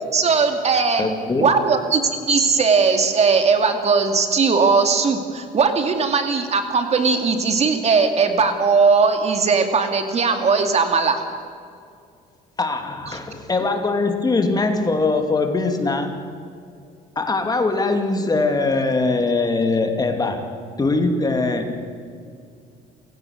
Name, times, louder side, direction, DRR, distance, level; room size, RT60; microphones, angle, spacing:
voice 1, 0.1-1.1 1.4-11.2 13.1-13.2, right 5 dB, 40° right, 6 dB, 2.4 m, -19 dB
voice 2, 1.0-1.5 12.6-16.2 17.2-21.8, left 3 dB, 25° left, 6 dB, 2.6 m, -22 dB
29.0 x 17.0 x 6.7 m, 2.3 s
cardioid pair, 110°, 17 cm